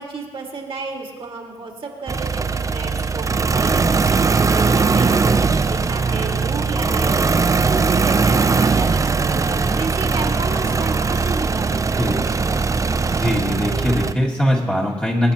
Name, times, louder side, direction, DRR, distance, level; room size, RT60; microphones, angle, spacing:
voice 1, 0.0-7.3 7.6-12.1, right 3 dB, 50° right, 0 dB, 2.0 m, -32 dB
sound 1, 2.1-14.1, right 4 dB, 30° right, 0.5 m, -19 dB
voice 2, 13.2-15.3, equal, 10° left, -4 dB, 2.2 m, -20 dB
23.5 x 9.3 x 2.9 m, 1.5 s
cardioid pair, 90°, 11 cm